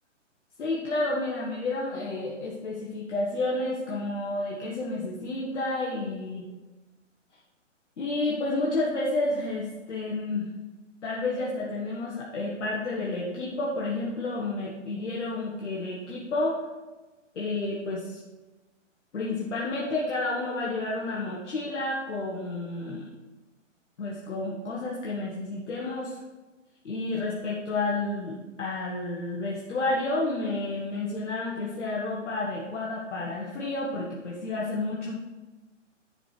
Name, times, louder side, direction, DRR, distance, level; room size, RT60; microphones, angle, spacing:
voice 1, 0.6-6.5 8.0-10.5 11.0-16.6 17.4-18.2 19.1-23.0 24.0-26.2 26.8-35.1, left 2 dB, 65° left, -4 dB, 1.7 m, -30 dB
10.5 x 4.6 x 5.1 m, 1.2 s
hypercardioid pair, 135°, 38 cm